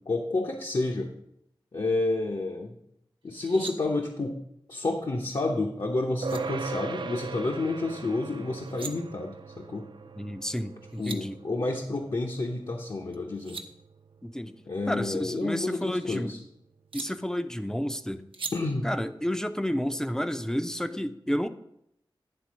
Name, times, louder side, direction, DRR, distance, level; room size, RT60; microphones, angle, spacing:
voice 1, 0.1-1.1 1.7-2.8 3.2-4.4 4.7-9.8 11.0-13.6 14.7-16.4 18.5-18.9, left 2 dB, 60° left, 0 dB, 0.8 m, -30 dB
sound 1, 3.3-3.7 5.8-5.9 6.2-6.4 8.5-8.9 10.6-10.7 10.8-11.2 13.1-13.7 15.1-16.2 16.9-17.1 18.3-18.5, right 4 dB, 80° right, 0.7 m, -40 dB
sound 2, 6.2-15.9, right 4 dB, 60° right, 0.4 m, -41 dB
voice 2, 10.2-11.4 14.2-14.6 14.9-16.4 16.9-18.2 18.8-21.5, equal, 5° left, 10 dB, 0.5 m, -31 dB
9.9 x 3.7 x 6.2 m, 0.77 s
wide cardioid pair, 70°, 9 cm